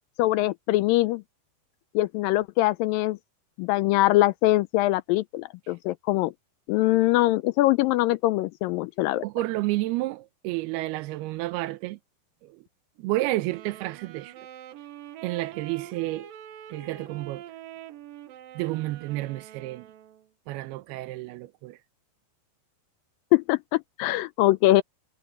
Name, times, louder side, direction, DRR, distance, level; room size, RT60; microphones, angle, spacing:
voice 1, 0.2-1.2 1.9-3.2 3.6-6.3 6.7-9.2 23.3-24.8, left 17 dB, 85° left, 2.0 m, -23 dB
voice 2, 9.2-12.0 12.4-12.6 13.0-14.3 15.2-16.3 16.7-17.4 18.6-19.8 20.5-21.8, right 18 dB, 85° right, 2.8 m, -30 dB
Wind instrument woodwind instrument, 13.4-20.3, right 11 dB, 70° right, 2.8 m, -44 dB
omnidirectional pair, 4.4 m